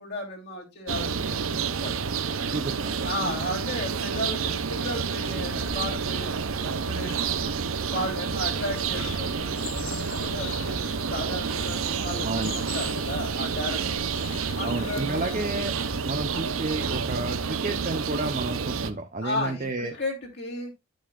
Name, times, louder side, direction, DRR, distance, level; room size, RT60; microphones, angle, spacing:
voice 1, 0.0-2.0 3.0-7.5 7.9-14.1 14.5-15.4 19.2-20.7, left 1 dB, 50° left, -1 dB, 3.1 m, -35 dB
sound 1, 0.9-18.9, right 5 dB, 75° right, 0.7 m, -29 dB
voice 2, 2.5-3.1 12.2-12.5 14.6-15.7 16.1-20.0, right 2 dB, 35° right, 4 dB, 0.8 m, -31 dB
Wind, 5.0-17.8, equal, 10° left, 1.5 m, -46 dB
Bird, 8.5-15.4, left 7 dB, 70° left, 0.9 m, -42 dB
12.0 x 6.4 x 2.4 m, 0.23 s
head